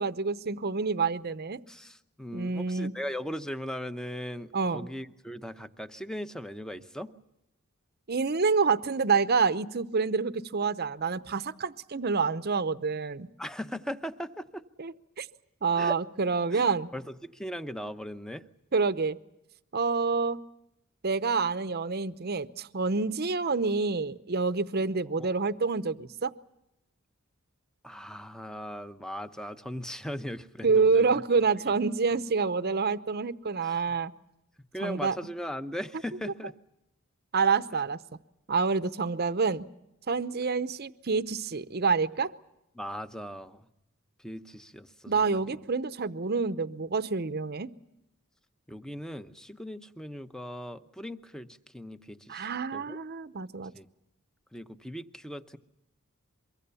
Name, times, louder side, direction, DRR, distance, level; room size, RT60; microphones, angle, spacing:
voice 1, 0.0-1.6 2.3-2.9 4.5-4.9 8.1-13.3 14.8-15.3 15.6-16.9 18.7-19.2 19.7-20.4 21.0-26.3 30.6-34.1 34.8-35.2 37.3-38.0 38.5-39.7 40.1-42.3 45.1-47.7 52.3-53.7, right 4 dB, 45° right, 14 dB, 0.8 m, -27 dB
voice 2, 1.7-7.1 13.4-14.6 15.8-16.0 16.5-18.5 25.2-25.3 27.8-31.1 33.6-33.9 34.7-36.5 42.7-43.7 44.2-45.4 48.7-51.5 51.7-53.0 53.7-53.9 54.5-55.6, equal, 5° left, 10 dB, 0.8 m, -39 dB
24.5 x 23.0 x 6.9 m, 0.89 s
head